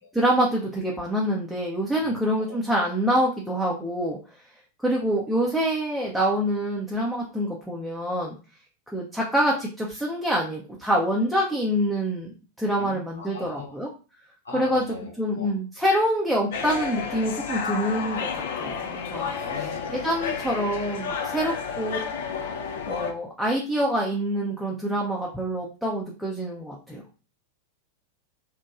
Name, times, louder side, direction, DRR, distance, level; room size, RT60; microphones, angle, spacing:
voice 1, 0.1-4.2 4.8-8.3 8.9-12.3 12.6-13.9 14.5-14.8 15.2-18.3 18.6-19.4 19.9-22.0 22.9-27.0, equal, ahead, -3 dB, 0.5 m, -26 dB
voice 2, 2.0-2.6 8.9-9.0 12.8-13.8 14.4-15.5 19.4-20.4 21.8-22.0, left 2 dB, 75° left, 0 dB, 0.9 m, -40 dB
sound 1, 16.5-23.1, left 6 dB, 55° left, 0.4 m, -31 dB
2.9 x 2.2 x 2.4 m, 0.34 s
figure-of-eight pair, 90°, 0 cm